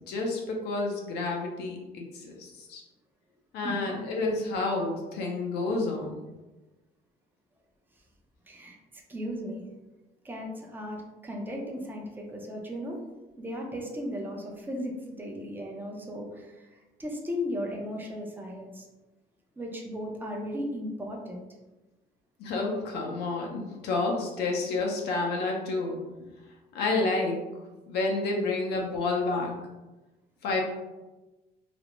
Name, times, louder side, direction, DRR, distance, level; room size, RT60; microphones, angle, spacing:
voice 1, 0.1-2.8 3.5-6.2 22.4-26.0 26.7-27.4 27.9-29.5 30.4-30.6, left 3 dB, 75° left, -1 dB, 0.6 m, -29 dB
voice 2, 3.6-4.0 8.5-8.8 9.1-9.6 10.2-13.0 13.4-16.7 17.0-18.8 19.6-21.4, equal, 10° right, 0 dB, 0.5 m, -36 dB
2.4 x 2.0 x 2.9 m, 1.1 s
cardioid pair, 110°, 17 cm